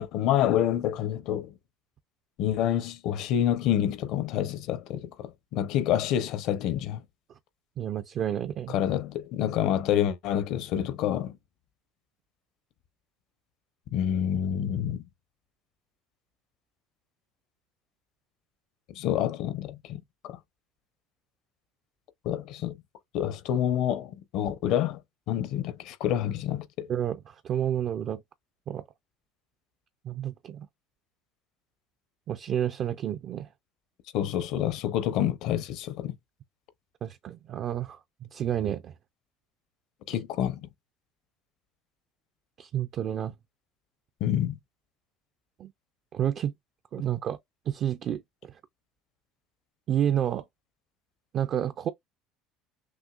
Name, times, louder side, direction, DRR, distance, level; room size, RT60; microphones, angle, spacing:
voice 1, 0.0-1.5 2.4-7.0 8.7-11.4 13.9-15.0 18.9-20.4 22.2-22.8 23.1-25.0 25.3-26.9 34.1-36.1 40.1-40.7 44.2-44.6, left 10 dB, 65° left, 0.8 m, -28 dB
voice 2, 7.8-8.7 26.9-28.2 28.7-28.8 30.0-30.7 32.3-33.5 37.0-38.9 40.1-40.2 42.6-43.3 45.6-45.7 46.1-46.5 46.9-47.4 47.7-48.5 49.9-50.4 51.3-51.9, right 10 dB, 45° right, 0.4 m, -30 dB
6.2 x 2.6 x 2.4 m
supercardioid pair, 120°, 0 cm